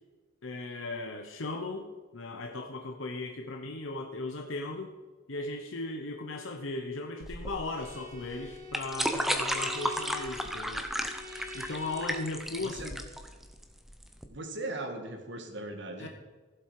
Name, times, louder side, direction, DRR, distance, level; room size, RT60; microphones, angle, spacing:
voice 1, 0.4-4.9 5.3-10.8 11.5-13.0 16.0-16.1, left 2 dB, 75° left, 3 dB, 1.0 m, -37 dB
sound 1, 7.2-14.2, equal, ahead, 0.8 m, -34 dB
Bowed string instrument, 7.7-12.4, left 3 dB, 45° right, 1.2 m, -45 dB
voice 2, 12.6-12.9 14.3-16.1, right 2 dB, 60° right, 5 dB, 1.7 m, -38 dB
16.0 x 7.6 x 4.9 m, 1.3 s
head